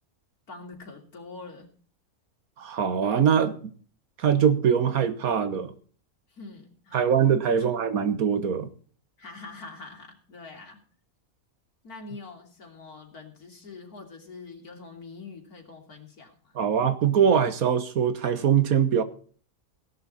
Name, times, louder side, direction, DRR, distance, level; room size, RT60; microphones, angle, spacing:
voice 1, 0.5-1.7 6.3-7.1 7.5-7.7 9.2-10.8 11.8-16.6, left 3 dB, 85° left, 3.5 m, -44 dB
voice 2, 2.6-3.7 4.2-5.7 6.9-8.7 16.5-19.0, right 7 dB, 75° right, 1.7 m, -22 dB
17.0 x 11.5 x 4.2 m
omnidirectional pair, 1.5 m